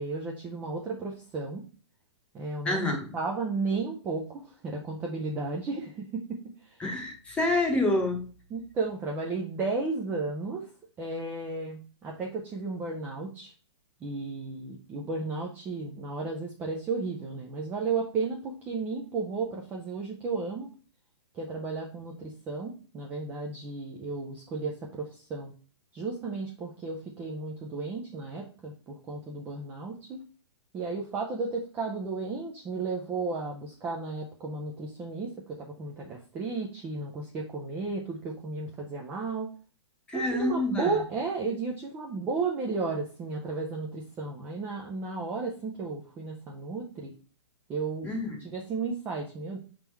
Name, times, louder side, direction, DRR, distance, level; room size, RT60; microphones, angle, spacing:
voice 1, 0.0-1.6 2.3-6.8 8.5-10.7 11.0-13.5 14.0-20.7 21.3-25.5 25.9-30.2 30.7-39.5 40.1-47.1 47.7-48.1 48.4-49.6, right 4 dB, 10° right, 0 dB, 0.5 m, -34 dB
voice 2, 2.6-3.1 6.8-8.2 40.1-40.9 48.0-48.4, left 2 dB, 5° left, 3 dB, 1.0 m, -27 dB
5.6 x 3.7 x 4.5 m, 0.38 s
hypercardioid pair, 165°, 15 cm